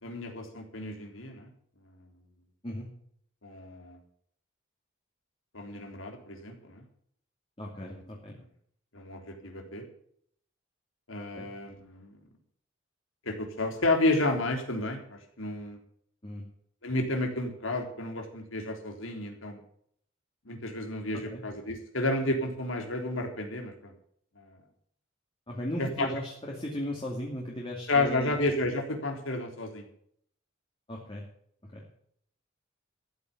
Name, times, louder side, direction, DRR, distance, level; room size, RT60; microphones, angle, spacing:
voice 1, 0.0-1.5 3.4-4.0 5.5-6.8 7.8-8.0 8.9-9.8 11.1-12.1 13.3-15.8 16.8-19.6 20.5-23.9 24.4-24.6 25.8-26.1 27.9-29.9, left 2 dB, 75° left, 3 dB, 3.6 m, -31 dB
voice 2, 7.6-8.4 11.3-11.5 16.2-16.5 21.1-21.4 25.5-28.4 30.9-31.2 31.7-31.8, left 1 dB, 25° left, -2 dB, 2.6 m, -37 dB
14.0 x 9.2 x 7.3 m, 0.65 s
head